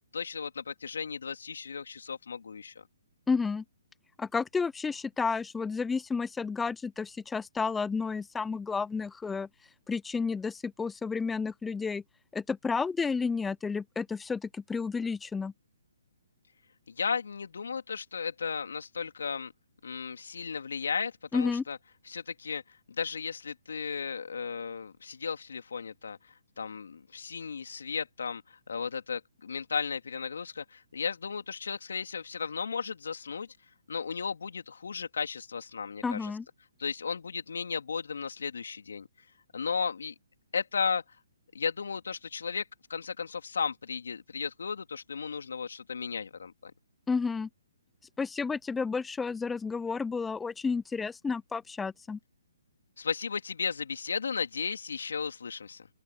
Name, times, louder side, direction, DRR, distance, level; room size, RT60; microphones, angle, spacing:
voice 1, 0.1-2.8 16.9-19.5 19.8-21.8 22.0-26.2 26.6-33.5 33.9-36.3 36.8-39.1 39.5-40.1 40.5-41.0 41.5-46.7 53.0-55.9, left 6 dB, 75° left, 3.3 m, -35 dB
voice 2, 3.3-3.6 4.2-9.5 9.9-12.0 12.3-15.5 21.3-21.6 36.0-36.4 47.1-47.5 48.2-52.2, left 5 dB, 10° left, 0.6 m, -31 dB
open air
hypercardioid pair, 140°, 0 cm